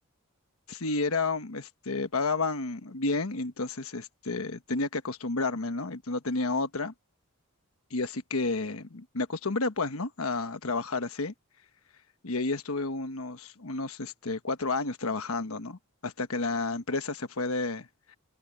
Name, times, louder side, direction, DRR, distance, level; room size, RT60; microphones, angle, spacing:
voice 1, 0.7-6.9 7.9-11.3 12.2-17.9, left 3 dB, 70° left, 1.3 m, -31 dB
head